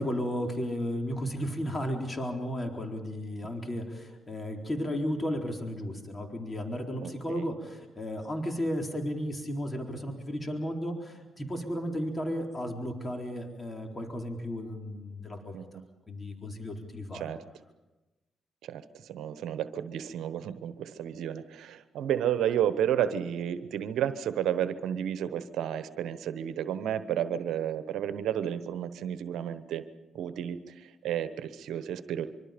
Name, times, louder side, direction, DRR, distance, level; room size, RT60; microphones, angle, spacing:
voice 1, 0.0-15.6 16.1-17.2, equal, 30° left, 2 dB, 4.1 m, -34 dB
voice 2, 7.0-7.5 15.5-15.8 17.1-17.4 18.6-29.8 30.1-32.3, right 10 dB, 75° right, 12 dB, 1.1 m, -32 dB
25.5 x 24.5 x 5.2 m, 1.1 s
supercardioid pair, 50°, 0 cm